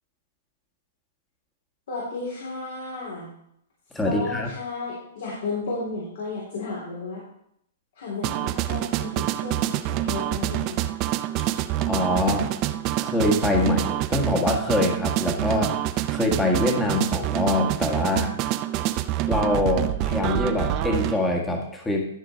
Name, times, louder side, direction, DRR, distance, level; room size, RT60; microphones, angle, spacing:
voice 1, 1.9-3.3 4.0-7.2 8.0-10.8, left 3 dB, 65° left, -5 dB, 3.8 m, -33 dB
voice 2, 3.9-4.5 11.8-12.5 13.0-15.8 16.1-18.3 19.3-22.1, left 2 dB, 10° left, 1 dB, 1.7 m, -24 dB
sound 1, 8.2-21.2, right 14 dB, 35° right, 0.5 m, -26 dB
13.0 x 5.1 x 4.5 m, 0.74 s
hypercardioid pair, 130°, 0 cm